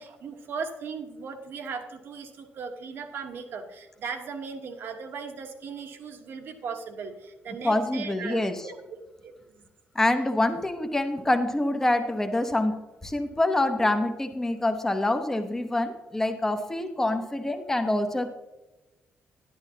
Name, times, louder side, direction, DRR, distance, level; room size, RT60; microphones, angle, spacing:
voice 1, 0.0-9.6, right 5 dB, 65° right, 6 dB, 1.2 m, -38 dB
voice 2, 7.6-8.7 9.9-12.8 13.0-18.3, left 1 dB, 10° left, 7 dB, 0.9 m, -26 dB
11.0 x 11.0 x 2.8 m, 1.1 s
cardioid pair, 155°, 4 cm